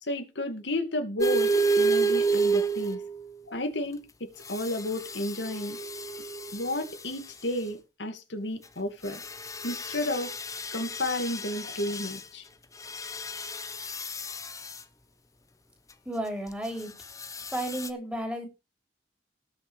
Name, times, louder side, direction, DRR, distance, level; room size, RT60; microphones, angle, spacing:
voice 1, 0.0-3.0 3.5-5.8 6.5-9.2 9.6-10.3 10.7-12.4, left 1 dB, 90° left, 2.4 m, -32 dB
sound 1, 1.2-3.3 4.5-6.9 9.1-12.2 12.8-14.8 17.2-17.9, right 3 dB, 20° left, 1.0 m, -30 dB
voice 2, 16.1-16.9 17.5-18.5, right 1 dB, 5° right, 3.7 m, -32 dB
18.5 x 6.9 x 3.5 m
head